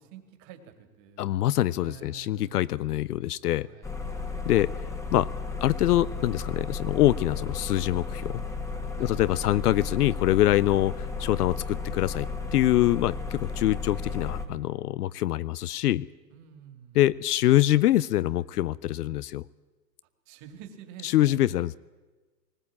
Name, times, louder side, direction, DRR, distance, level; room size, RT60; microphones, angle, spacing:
voice 1, 0.0-1.3 1.7-2.7 3.6-3.9 9.0-9.2 16.3-17.0 20.3-21.8, right 9 dB, 35° right, 7 dB, 2.5 m, -48 dB
voice 2, 1.2-3.7 4.5-4.7 5.1-5.3 5.6-8.4 9.0-16.1 16.9-19.4 21.0-21.8, left 14 dB, 70° left, 19 dB, 0.6 m, -24 dB
sound 1, 3.8-14.5, left 4 dB, 5° left, 1.5 m, -34 dB
19.5 x 17.0 x 8.6 m, 1.3 s
hypercardioid pair, 130°, 49 cm